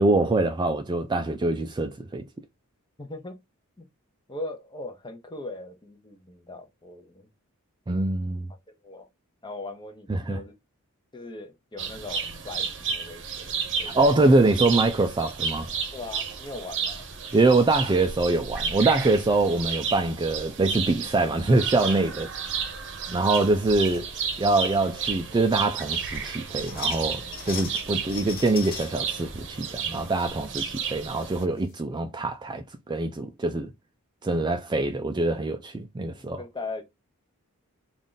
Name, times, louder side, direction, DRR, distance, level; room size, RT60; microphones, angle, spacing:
voice 1, 0.0-2.2 7.9-8.5 10.1-10.4 13.9-15.7 17.3-22.3 23.1-24.1 24.4-33.7 34.2-36.4, right 2 dB, 20° right, 0.3 m, -24 dB
voice 2, 3.0-3.4 3.8-3.9 4.3-7.3 8.8-9.1 9.4-10.5 11.1-13.5 13.8-14.3 15.9-17.1 36.2-36.8, left 2 dB, 20° left, 0.8 m, -39 dB
sound 1, 11.8-31.4, right 6 dB, 55° right, 0.8 m, -32 dB
sound 2, 13.2-13.6 14.2-14.4 15.3-15.5 15.8-15.9 16.1-16.3 17.0-17.5 17.9-18.3 20.1-20.2 20.4-20.7 21.1-21.2 21.9-22.1 22.5-22.6 23.0-23.5 23.8-24.5 24.8-24.9 25.5-25.6 25.9-29.0 29.4-30.3 30.6-30.7 31.2-31.3 31.6-31.7, left 6 dB, 45° left, 1.1 m, -42 dB
3.6 x 2.5 x 3.8 m
head